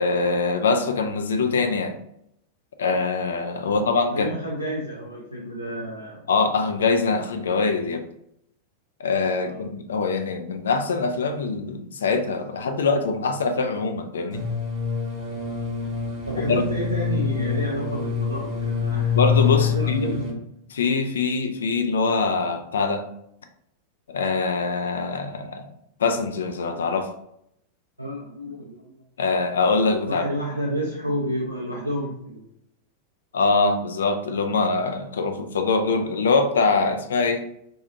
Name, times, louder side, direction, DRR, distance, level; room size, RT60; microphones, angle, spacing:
voice 1, 0.0-2.0 2.8-4.3 6.3-8.1 9.0-14.4 16.5-16.6 19.1-20.2 20.7-23.0 24.1-25.6 26.0-27.1 29.2-30.3 33.3-37.4, left 4 dB, 65° left, 7 dB, 0.3 m, -23 dB
voice 2, 4.1-6.3 9.5-9.6 16.3-19.2 19.5-20.3 28.0-29.0 30.1-32.5, equal, 85° right, -3 dB, 0.4 m, -30 dB
sound 1, 14.3-20.3, left 6 dB, 35° right, 0.7 m, -25 dB
2.6 x 2.4 x 2.7 m, 0.76 s
figure-of-eight pair, 90°, 0 cm